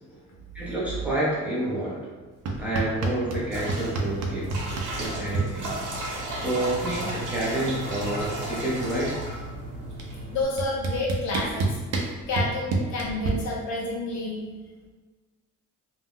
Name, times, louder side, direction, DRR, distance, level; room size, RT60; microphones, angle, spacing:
voice 1, 0.5-2.1 2.6-4.6 5.0-5.7 6.3-9.2, right 1 dB, 5° right, -8 dB, 0.5 m, -29 dB
sound 1, 2.5-3.4 3.7-5.5 6.7-6.8 7.1-7.5 7.8-9.1 10.0-10.1 10.6-13.3, right 3 dB, 60° right, 0.5 m, -28 dB
sound 2, 3.5-10.4, right 1 dB, 85° right, 0.9 m, -34 dB
voice 2, 10.3-11.8 12.3-14.4, left 2 dB, 65° left, -3 dB, 0.8 m, -29 dB
2.5 x 2.1 x 3.5 m, 1.3 s
cardioid pair, 170°, 30 cm